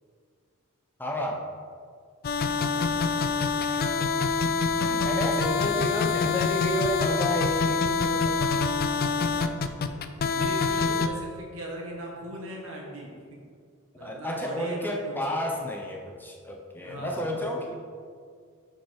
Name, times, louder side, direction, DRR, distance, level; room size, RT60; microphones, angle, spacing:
voice 1, 1.0-1.4 3.6-3.8 4.8-8.6 14.0-17.7, equal, 10° left, 0 dB, 0.7 m, -31 dB
sound 1, 2.2-11.1, left 5 dB, 45° left, 0.4 m, -26 dB
voice 2, 2.4-3.1 9.4-9.7 10.0-13.2 14.0-15.1 16.8-17.4 17.7-17.8, equal, 65° right, -1 dB, 1.7 m, -39 dB
9.7 x 4.4 x 4.7 m, 2.1 s
head